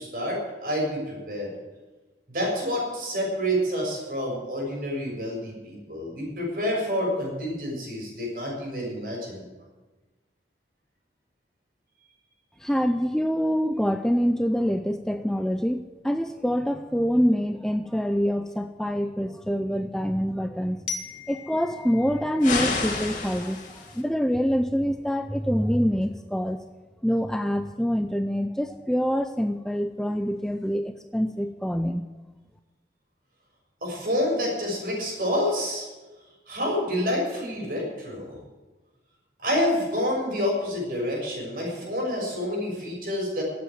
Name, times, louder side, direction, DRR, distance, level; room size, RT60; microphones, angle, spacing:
voice 1, 0.0-1.5 2.3-9.4 33.8-35.8 36.5-38.4 39.4-43.4, equal, 50° right, -2 dB, 6.7 m, -28 dB
voice 2, 12.6-20.8 21.3-26.6 27.0-32.0, equal, 5° left, 8 dB, 0.4 m, -25 dB
Glockenspiel, 20.9-23.7, left 5 dB, 80° left, 1.6 m, -40 dB
sound 1, 22.4-24.0, left 3 dB, 45° left, 2.4 m, -29 dB
13.0 x 8.6 x 9.5 m, 1.2 s
head